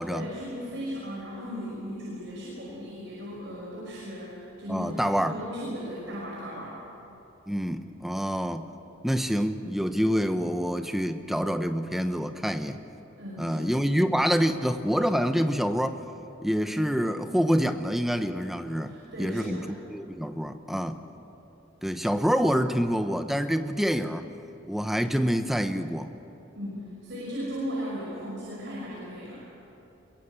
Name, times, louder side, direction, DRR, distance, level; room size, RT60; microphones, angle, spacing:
voice 1, 0.0-6.8 13.2-13.8 18.9-19.6 26.5-29.4, equal, 60° right, -6 dB, 5.8 m, -37 dB
voice 2, 4.7-5.3 7.5-8.7 9.0-12.8 13.4-16.0 16.4-21.0 21.8-24.3 24.7-26.1, equal, ahead, 8 dB, 0.9 m, -27 dB
23.0 x 22.0 x 8.3 m, 2.9 s
head